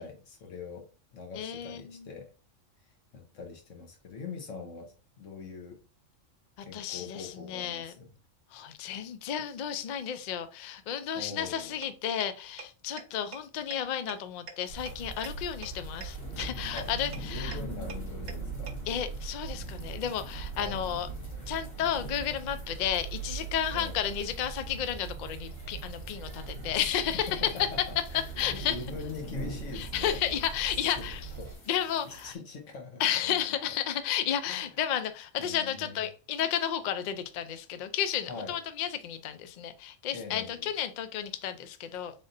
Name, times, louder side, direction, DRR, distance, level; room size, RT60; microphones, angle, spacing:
voice 1, 0.0-2.3 2.8-5.8 6.6-8.1 11.1-11.7 16.7-16.9 17.2-18.8 20.6-21.0 23.7-24.0 26.7-27.0 27.3-30.3 30.8-31.5 32.0-33.8 34.5-34.7 35.4-36.0 38.3-38.5 40.1-40.7 41.9-42.1, left 4 dB, 75° left, 1.4 m, -43 dB
voice 2, 1.3-2.1 6.6-7.9 8.5-17.6 18.9-21.1 21.5-27.4 28.4-28.8 29.7-31.3 31.7-32.3 33.0-42.1, left 9 dB, 90° left, 0.4 m, -32 dB
sound 1, 11.8-11.9 12.2-12.3 12.6-12.7 13.0-13.1 13.3-13.4 13.7-13.8 14.1-14.2 14.5-14.6 14.9-15.0 15.2-15.3 15.6-15.7 16.0-16.1 16.4-16.5 16.8-16.9 17.1-17.2 17.5-17.6 17.9-18.0 18.3-18.4 18.7-18.8, right 6 dB, 55° right, 0.8 m, -40 dB
sound 2, 14.7-32.3, left 1 dB, 45° left, 1.1 m, -46 dB
sound 3, 14.7-31.6, right 5 dB, 80° right, 1.2 m, -41 dB
3.8 x 3.4 x 2.6 m
omnidirectional pair, 1.4 m